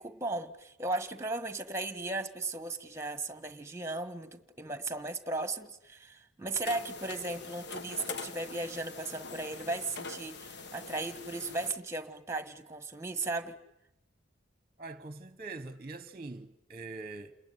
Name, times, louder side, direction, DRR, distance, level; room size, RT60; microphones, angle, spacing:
voice 1, 0.0-13.6, right 2 dB, 15° right, 1.5 m, -36 dB
sound 1, 6.6-11.7, left 4 dB, 60° left, 1.3 m, -43 dB
voice 2, 14.8-17.3, right 3 dB, 30° right, 1.1 m, -43 dB
29.0 x 21.0 x 9.6 m
head